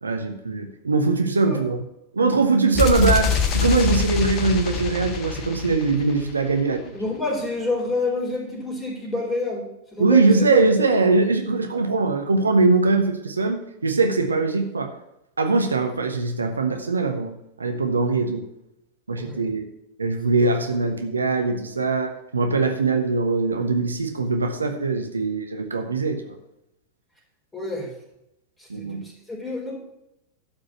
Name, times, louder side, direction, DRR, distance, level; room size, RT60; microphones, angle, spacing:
voice 1, 0.0-1.8 2.1-7.0 10.0-14.9 15.4-18.4 19.1-19.6 20.0-26.3 28.7-29.0, right 3 dB, 75° right, 5 dB, 1.2 m, -22 dB
sound 1, 2.7-6.6, left 6 dB, 35° left, 1.7 m, -25 dB
voice 2, 6.9-10.6 19.1-19.4 20.4-20.6 27.5-27.9 28.6-29.8, left 2 dB, 10° left, -1 dB, 4.1 m, -28 dB
11.5 x 5.4 x 7.2 m, 0.85 s
figure-of-eight pair, 90°, 0 cm